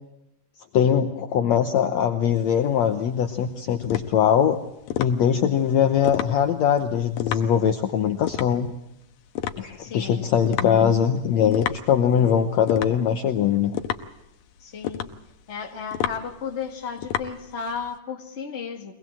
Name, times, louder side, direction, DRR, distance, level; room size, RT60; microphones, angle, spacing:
voice 1, 0.7-4.6 5.0-8.7 9.6-13.8, left 8 dB, 65° left, 7 dB, 1.9 m, -21 dB
sound 1, 2.4-18.0, left 11 dB, 90° left, 2.7 m, -33 dB
voice 2, 9.8-10.3 14.6-15.2 15.5-18.9, left 6 dB, 25° left, 2 dB, 1.9 m, -34 dB
23.0 x 19.5 x 7.6 m, 0.87 s
omnidirectional pair, 3.8 m